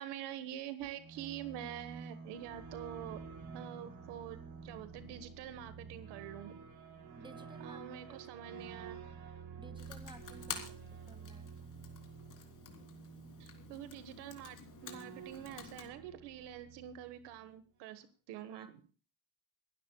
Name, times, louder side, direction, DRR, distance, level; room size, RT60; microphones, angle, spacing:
voice 1, 0.0-3.2 3.5-6.6 7.6-9.0 13.4-18.8, right 11 dB, 80° right, 12 dB, 1.4 m, -46 dB
sound 1, 0.8-17.4, right 5 dB, 65° right, 4.7 m, -50 dB
voice 2, 7.2-7.8 8.1-8.2 9.6-11.7 18.5-18.7, right 2 dB, 10° right, 10 dB, 1.9 m, -56 dB
Computer keyboard, 9.8-15.9, left 7 dB, 50° left, 3.3 m, -50 dB
28.5 x 12.0 x 2.3 m, 0.36 s
supercardioid pair, 80°, 40 cm